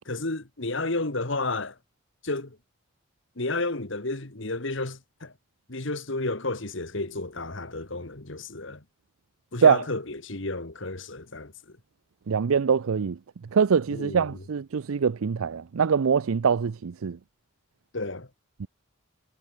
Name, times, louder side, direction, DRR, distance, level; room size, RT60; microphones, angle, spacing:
voice 1, 0.1-1.8 2.2-2.6 3.4-5.3 5.7-8.8 9.5-11.5 13.9-14.3 17.9-18.3, left 2 dB, 60° left, 1.9 m, -31 dB
voice 2, 12.3-13.2 13.5-17.2 18.6-18.7, right 6 dB, 85° right, 0.5 m, -23 dB
head